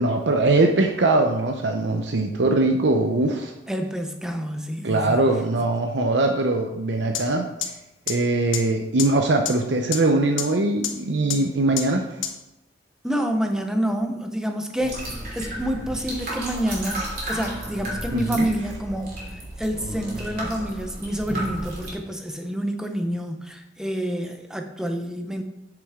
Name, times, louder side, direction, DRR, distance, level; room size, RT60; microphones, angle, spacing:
voice 1, 0.0-3.5 4.8-7.5 8.1-12.1 18.1-18.5, right 2 dB, 65° right, 3 dB, 0.7 m, -21 dB
voice 2, 3.7-5.2 13.0-25.4, equal, 5° right, 5 dB, 0.7 m, -28 dB
sound 1, 7.1-7.2 7.6-7.7 8.1-8.2 8.5-8.6 9.0-9.1 9.5-9.6 9.9-10.0 10.4-10.5 10.8-10.9 11.3-11.4 11.8-11.9 12.2-12.3, left 10 dB, 85° left, 1.1 m, -25 dB
sound 2, 14.8-21.9, right 1 dB, 50° right, 2.9 m, -33 dB
8.2 x 6.7 x 3.7 m, 0.95 s
head